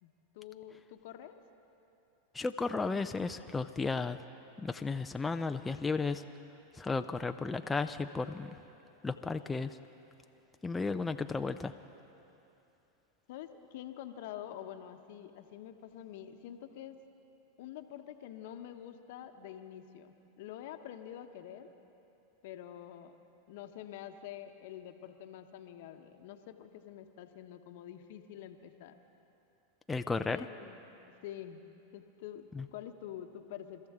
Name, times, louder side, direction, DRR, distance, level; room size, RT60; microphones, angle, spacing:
voice 1, 0.0-1.4 11.0-11.1 13.3-17.0 17.6-21.7 22.4-23.2 23.5-29.0 30.2-30.8 31.2-31.6 31.9-33.9, left 11 dB, 65° left, 7 dB, 1.0 m, -47 dB
voice 2, 2.3-4.2 4.6-6.2 6.7-8.5 9.0-9.8 10.6-11.7 29.9-30.5 32.6-32.7, left 4 dB, 15° left, 7 dB, 0.5 m, -34 dB
29.0 x 13.5 x 3.7 m, 2.9 s
hypercardioid pair, 105°, 0 cm